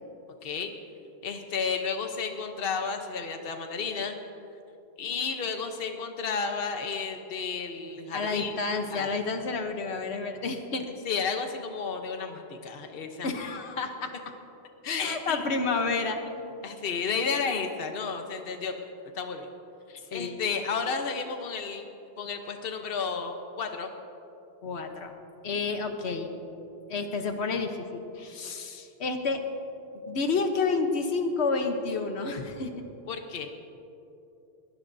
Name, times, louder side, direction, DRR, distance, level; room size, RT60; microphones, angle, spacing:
voice 1, 0.4-0.7 1.2-4.2 5.0-8.6 8.9-9.1 11.0-13.3 14.8-15.5 16.4-18.7 19.1-19.5 19.9-21.9 22.2-23.9 33.1-33.5, left 5 dB, 65° left, 5 dB, 1.1 m, -32 dB
voice 2, 8.1-10.9 13.2-14.1 15.0-16.2 20.1-20.4 24.6-25.1 25.4-26.3 26.9-29.4 30.1-32.7, left 4 dB, 85° left, 6 dB, 1.3 m, -30 dB
21.0 x 18.5 x 2.7 m, 2.8 s
omnidirectional pair, 1.1 m